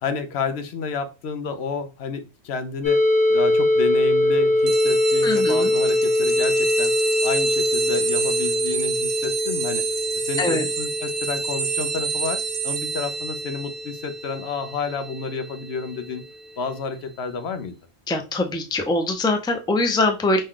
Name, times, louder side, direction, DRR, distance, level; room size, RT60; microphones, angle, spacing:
voice 1, 0.0-3.0 3.3-6.9 7.2-9.8 10.2-16.2 16.6-17.7, left 5 dB, 75° left, 9 dB, 0.9 m, -30 dB
sound 1, 2.8-14.5, left 1 dB, 55° left, 1.8 m, -23 dB
sound 2, 4.7-16.8, right 5 dB, 60° right, 1.1 m, -29 dB
voice 2, 5.2-5.7 10.4-10.7 18.1-20.4, left 2 dB, 5° left, 5 dB, 0.5 m, -23 dB
5.3 x 2.3 x 3.7 m, 0.30 s
omnidirectional pair, 1.1 m